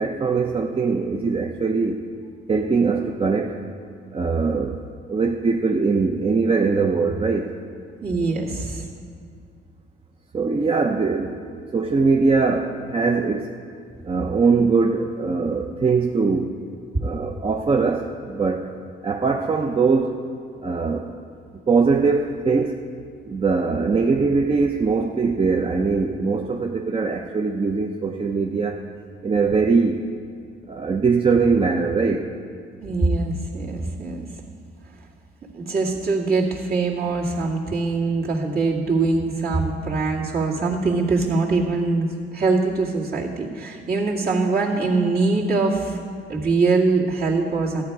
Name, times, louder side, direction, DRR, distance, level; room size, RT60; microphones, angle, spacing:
voice 1, 0.0-2.0 2.5-3.6 4.1-4.8 5.1-7.5 10.3-13.5 14.0-16.6 17.0-18.7 19.0-20.2 20.6-21.1 21.7-22.8 23.3-28.8 29.2-30.0 30.7-32.3, right 4 dB, 30° right, 2 dB, 0.7 m, -21 dB
voice 2, 8.0-8.9 32.8-34.3 35.5-46.0 46.3-47.8, right 3 dB, 50° right, -4 dB, 2.3 m, -23 dB
14.0 x 9.3 x 4.8 m, 2.2 s
cardioid pair, 90°, 20 cm